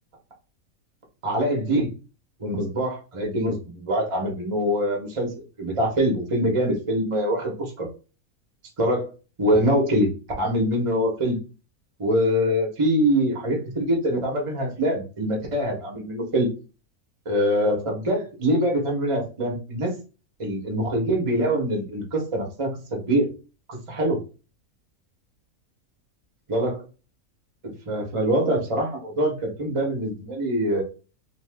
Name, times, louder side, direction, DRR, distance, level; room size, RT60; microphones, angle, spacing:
voice 1, 1.2-1.9 2.4-5.3 5.6-7.9 8.8-9.1 9.4-11.4 12.0-16.5 17.2-19.9 20.4-23.3 23.7-24.2 26.5-26.8 27.6-30.8, equal, 30° right, 0 dB, 0.8 m, -24 dB
2.8 x 2.4 x 3.4 m, 0.33 s
omnidirectional pair, 1.6 m